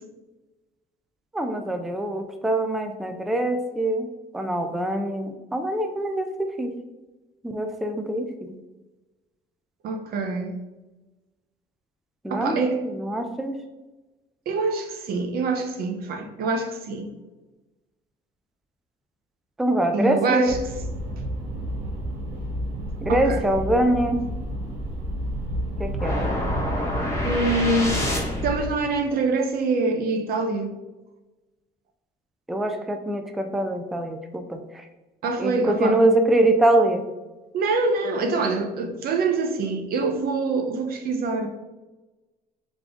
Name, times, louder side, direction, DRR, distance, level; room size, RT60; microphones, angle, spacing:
voice 1, 1.3-4.1 4.3-6.7 7.4-8.5 12.2-12.6 12.8-13.5 19.6-20.6 23.0-24.2 25.8-26.2 32.5-34.9 35.4-37.0, right 1 dB, ahead, 0.4 m, -24 dB
voice 2, 9.8-10.5 12.3-12.8 14.5-17.1 19.9-20.6 23.1-23.4 26.7-26.8 27.3-28.0 28.4-30.8 35.2-36.0 37.5-41.5, right 3 dB, 65° right, 0.7 m, -25 dB
sound 1, 20.5-28.7, equal, 80° right, 1.1 m, -30 dB
sound 2, 26.0-28.7, left 1 dB, 15° left, 1.2 m, -27 dB
3.6 x 3.6 x 3.5 m
cardioid pair, 110°, 17 cm